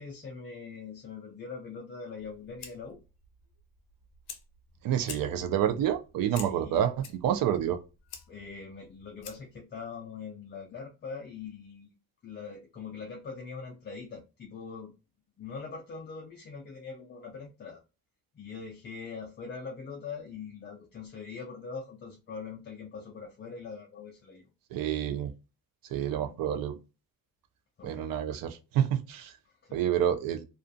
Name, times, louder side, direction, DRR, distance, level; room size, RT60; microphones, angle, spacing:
voice 1, 0.0-3.0 6.3-6.9 8.3-11.9 12.2-14.9 15.4-17.8 18.3-24.5 26.1-26.3 27.8-28.2 29.4-29.8, left 5 dB, 30° left, 0.3 m, -42 dB
Fire, 2.2-9.6, left 7 dB, 90° left, 0.7 m, -49 dB
voice 2, 4.8-7.8 24.7-25.3 25.9-26.8 27.8-29.3 29.7-30.4, right 10 dB, 65° right, 0.5 m, -28 dB
2.4 x 2.3 x 2.5 m
cardioid pair, 160°, 37 cm